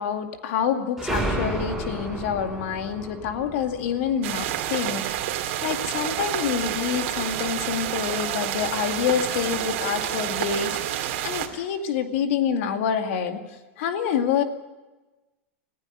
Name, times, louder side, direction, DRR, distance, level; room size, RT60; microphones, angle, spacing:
voice 1, 0.0-5.0 5.6-13.4 13.8-14.4, left 8 dB, 65° left, 6 dB, 2.3 m, -27 dB
sound 1, 1.0-5.4, right 1 dB, ahead, 6.3 m, -32 dB
sound 2, 4.2-11.5, right 12 dB, 65° right, 2.5 m, -29 dB
20.0 x 15.5 x 10.0 m, 1.1 s
supercardioid pair, 140°, 7 cm